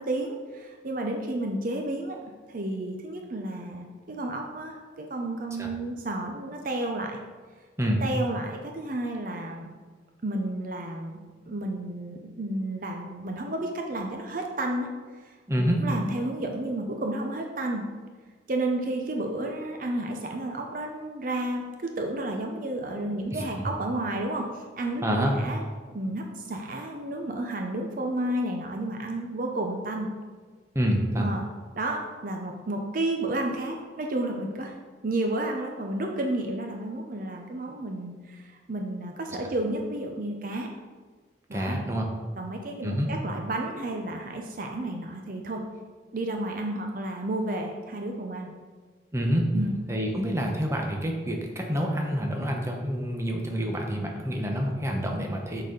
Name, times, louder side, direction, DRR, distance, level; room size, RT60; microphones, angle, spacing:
voice 1, 0.0-2.2 2.5-7.2 8.0-9.7 10.2-11.2 11.5-14.9 15.2-17.8 18.5-24.5 24.8-25.0 25.4-30.1 31.2-31.5 31.7-34.8 35.0-40.7 41.5-41.8 42.4-45.6 46.1-48.5 49.5-49.8, right 1 dB, 50° right, 2 dB, 0.6 m, -31 dB
voice 2, 15.5-15.8 23.3-23.4 25.0-25.3 30.7-31.3 41.5-42.1 42.8-43.1 49.1-49.6 49.9-55.6, equal, 15° right, 1 dB, 0.8 m, -27 dB
6.5 x 4.1 x 5.1 m, 1.5 s
head